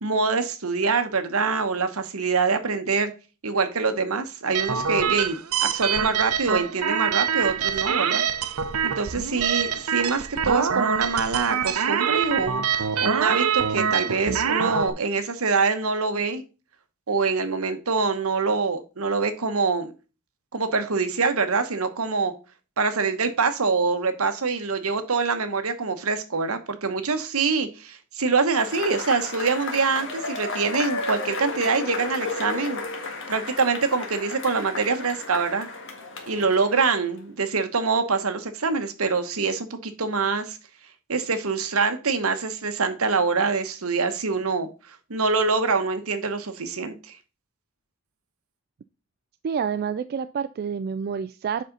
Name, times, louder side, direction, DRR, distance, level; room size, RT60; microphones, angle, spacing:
voice 1, 0.0-3.1 3.4-8.2 8.8-16.4 17.1-19.9 20.5-22.3 22.8-32.8 33.3-35.7 36.3-40.6 41.1-44.7 45.1-47.2, right 4 dB, 75° right, 9 dB, 1.1 m, -25 dB
sound 1, 4.5-14.9, right 7 dB, 90° right, 0.7 m, -25 dB
Cheering / Applause / Crowd, 28.5-37.2, left 3 dB, 60° left, 1.8 m, -33 dB
voice 2, 49.4-51.6, right 7 dB, 45° right, 12 dB, 0.3 m, -28 dB
7.5 x 5.5 x 3.9 m, 0.32 s
head